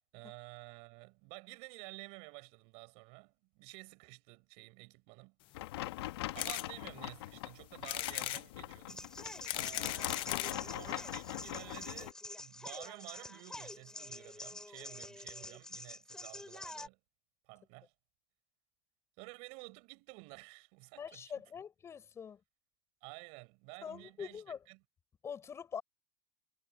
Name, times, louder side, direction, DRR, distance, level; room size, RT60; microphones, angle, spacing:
voice 1, 0.1-5.4 6.3-9.1 9.5-17.0 17.5-17.9 19.2-21.4 23.0-24.4 24.7-24.8, right 30 dB, 55° right, 6.8 m, -52 dB
sound 1, 5.5-12.1, left 16 dB, 85° left, 2.1 m, -42 dB
sound 2, 6.4-6.7 7.2-7.3 7.8-8.4 9.2-10.6 11.4-11.5 11.7-11.8 12.0-12.1, left 18 dB, 40° left, 0.9 m, -37 dB
sound 3, 8.9-16.9, left 2 dB, 5° left, 5.5 m, -47 dB
voice 2, 21.0-22.4 23.8-24.6 25.2-25.8, left 7 dB, 20° left, 7.3 m, -44 dB
supercardioid pair, 155°, 13 cm